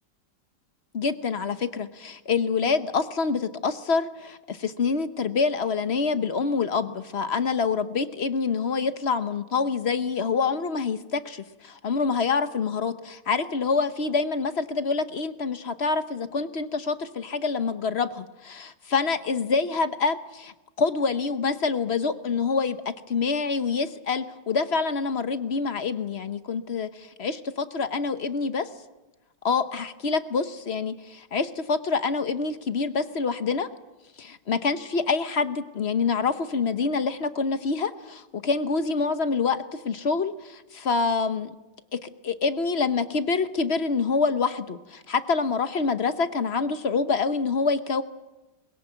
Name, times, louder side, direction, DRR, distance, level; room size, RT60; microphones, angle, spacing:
voice 1, 0.9-27.4 27.7-28.7 29.4-33.7 34.2-41.5 41.9-48.0, left 4 dB, 45° left, 11 dB, 1.0 m, -26 dB
21.5 x 21.5 x 9.1 m, 1.1 s
omnidirectional pair, 2.0 m